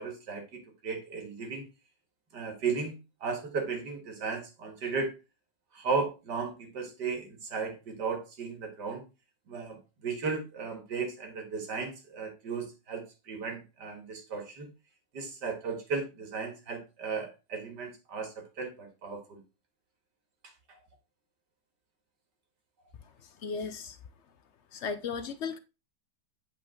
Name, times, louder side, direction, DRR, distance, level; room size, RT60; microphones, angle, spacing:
voice 1, 0.0-1.6 2.3-5.1 5.7-9.0 9.5-14.7 15.1-19.4, right 5 dB, 70° right, 2.3 m, -35 dB
voice 2, 23.4-24.0 24.7-25.6, left 5 dB, 65° left, 0.7 m, -35 dB
8.0 x 5.0 x 3.7 m
omnidirectional pair, 1.9 m